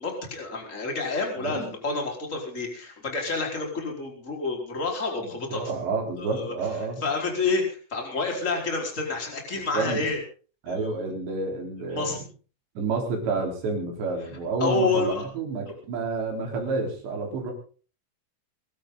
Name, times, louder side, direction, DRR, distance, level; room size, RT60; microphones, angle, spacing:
voice 1, 0.0-5.6 6.2-6.5 7.0-10.2 10.6-11.0 11.8-12.2 14.6-15.3 15.6-15.7, left 3 dB, 15° left, 1 dB, 4.5 m, -29 dB
voice 2, 1.4-1.7 5.2-7.1 9.5-10.1 10.6-12.2 12.8-17.5, right 3 dB, 60° right, 2 dB, 6.0 m, -30 dB
23.5 x 13.0 x 4.0 m, 0.39 s
omnidirectional pair, 5.8 m